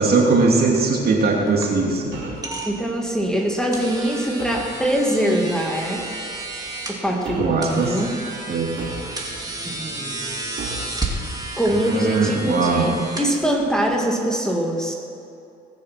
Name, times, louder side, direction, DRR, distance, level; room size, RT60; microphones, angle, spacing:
voice 1, 0.0-2.1 7.4-8.0 8.5-8.7 11.8-12.9, right 3 dB, 55° right, -1 dB, 3.0 m, -20 dB
sound 1, 0.7-13.9, right 2 dB, 20° right, 2.7 m, -33 dB
sound 2, 2.1-2.5 4.4-4.7 6.0-6.2 7.2-7.7 8.8-9.4 10.6-11.0, right 3 dB, 75° right, 3.5 m, -34 dB
voice 2, 2.6-6.1 6.9-8.1 9.6-10.4 11.6-14.9, right 1 dB, 5° left, 0 dB, 2.1 m, -23 dB
20.0 x 6.7 x 6.0 m, 2.6 s
cardioid pair, 70°, 19 cm